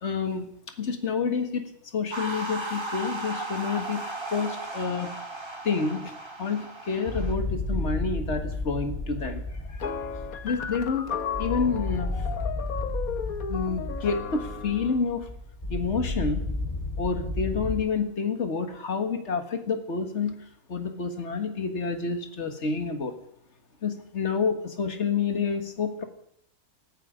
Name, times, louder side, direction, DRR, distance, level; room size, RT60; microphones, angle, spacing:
voice 1, 0.0-0.5 0.8-4.0 4.3-5.1 5.6-6.1 6.4-10.0 10.4-11.1 11.4-12.3 13.5-15.3 15.7-16.4 17.0-20.4 20.7-23.2 23.8-26.0, left 5 dB, 50° left, 6 dB, 2.0 m, -29 dB
sound 1, 2.1-7.3, right 2 dB, 15° right, 2.1 m, -36 dB
sound 2, 7.1-17.8, left 2 dB, 25° left, 5.3 m, -33 dB
sound 3, 9.8-15.0, left 7 dB, 70° left, 1.5 m, -35 dB
19.0 x 14.0 x 5.1 m, 0.72 s
omnidirectional pair, 1.6 m